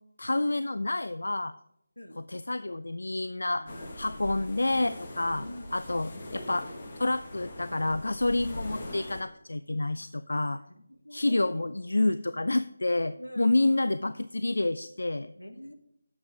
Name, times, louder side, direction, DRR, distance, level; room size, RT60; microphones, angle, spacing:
voice 1, 0.2-1.5 2.3-3.6 4.0-5.4 5.7-10.6 11.1-15.3, left 2 dB, 65° left, 12 dB, 0.4 m, -28 dB
voice 2, 3.5-4.5 5.3-5.7 10.5-11.7 13.1-13.5 15.3-15.7, equal, 85° left, 5 dB, 1.6 m, -45 dB
sound 1, 3.7-9.2, left 1 dB, 30° left, 1.6 m, -41 dB
9.3 x 7.4 x 3.6 m, 0.75 s
figure-of-eight pair, 160°, 0 cm